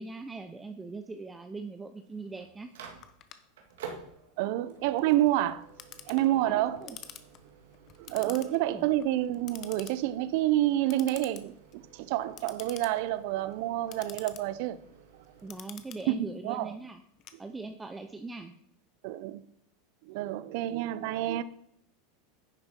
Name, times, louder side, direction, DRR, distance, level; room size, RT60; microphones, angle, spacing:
voice 1, 0.0-2.7 6.4-7.0 8.2-8.9 15.4-17.0 17.4-18.5, right 3 dB, 15° right, 0.6 m, -41 dB
Microwave oven, 1.9-15.5, right 6 dB, 85° right, 1.9 m, -52 dB
Clock, 3.0-18.0, left 11 dB, 45° left, 0.9 m, -50 dB
voice 2, 4.4-5.7 6.1-7.0 8.1-14.8 16.4-16.7 19.0-19.4 20.1-21.4, right 14 dB, 65° right, 0.5 m, -28 dB
10.0 x 6.7 x 4.3 m
supercardioid pair, 115°, 0 cm